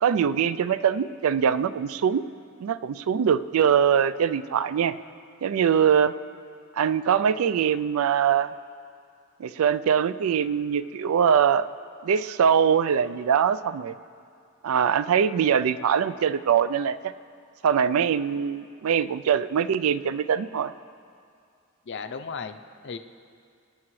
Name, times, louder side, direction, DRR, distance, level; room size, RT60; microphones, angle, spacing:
voice 1, 0.0-2.3 2.6-5.0 5.4-6.1 6.8-8.5 9.4-11.7 12.0-13.9 14.6-17.0 17.6-20.7, right 8 dB, 75° right, 14 dB, 0.3 m, -22 dB
voice 2, 21.9-23.0, left 5 dB, 55° left, 8 dB, 0.5 m, -35 dB
23.5 x 9.5 x 3.2 m, 2.3 s
head